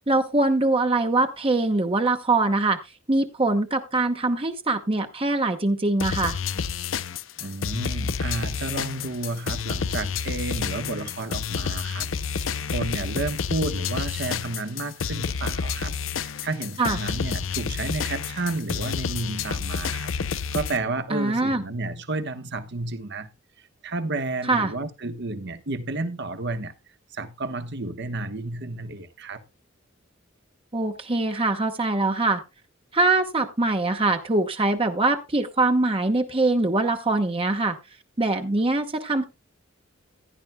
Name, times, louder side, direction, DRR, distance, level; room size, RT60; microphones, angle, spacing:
voice 1, 0.1-2.8 3.1-6.4 16.8-17.0 21.1-21.6 24.5-24.7 30.7-32.4 32.9-37.8 38.2-39.2, right 2 dB, 30° right, 1.0 m, -23 dB
sound 1, 6.0-20.8, left 6 dB, 70° left, 0.6 m, -29 dB
voice 2, 7.4-23.3 23.8-26.7 27.1-29.4, right 2 dB, 60° right, 1.2 m, -31 dB
15.5 x 10.5 x 2.2 m
head